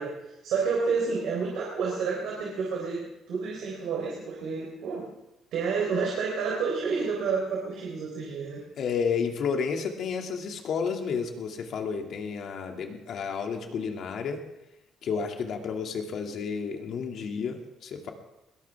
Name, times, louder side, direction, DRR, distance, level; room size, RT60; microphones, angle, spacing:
voice 1, 0.0-5.1 5.5-8.6, right 5 dB, 80° right, -2 dB, 4.0 m, -30 dB
voice 2, 8.8-14.4 15.0-18.1, left 6 dB, 65° left, 3 dB, 2.4 m, -31 dB
21.0 x 17.0 x 3.6 m, 0.92 s
cardioid pair, 105°, 0 cm